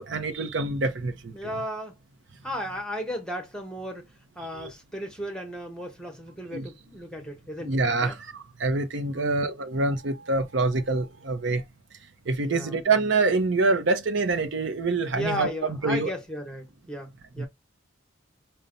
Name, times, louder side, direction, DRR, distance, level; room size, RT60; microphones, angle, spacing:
voice 1, 0.0-1.3 4.6-4.7 6.5-6.6 7.6-11.6 12.3-16.1 17.4-17.5, right 3 dB, 65° right, 0.7 m, -26 dB
voice 2, 1.3-2.0 2.4-4.1 4.3-8.2 9.1-9.4 12.5-12.8 15.1-17.5, equal, 5° left, 1.0 m, -35 dB
5.4 x 2.2 x 3.8 m
head